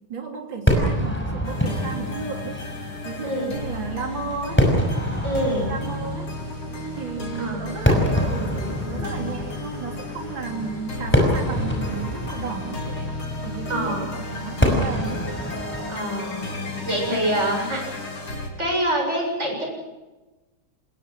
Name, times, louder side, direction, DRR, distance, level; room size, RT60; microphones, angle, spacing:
voice 1, 0.1-2.6 3.0-4.6 5.6-6.3 7.0-13.0 13.4-15.2 17.4-17.7, right 5 dB, 65° right, 3 dB, 3.7 m, -34 dB
Fireworks, 0.7-18.0, equal, 5° left, 5.5 m, -27 dB
sound 1, 1.4-18.5, left 2 dB, 85° left, 5.4 m, -33 dB
voice 2, 3.2-3.6 5.2-5.7 7.4-7.6 13.7-14.2 15.9-17.8 18.6-19.6, right 1 dB, 30° right, 1 dB, 7.8 m, -26 dB
28.5 x 21.0 x 6.1 m, 1.1 s
omnidirectional pair, 2.3 m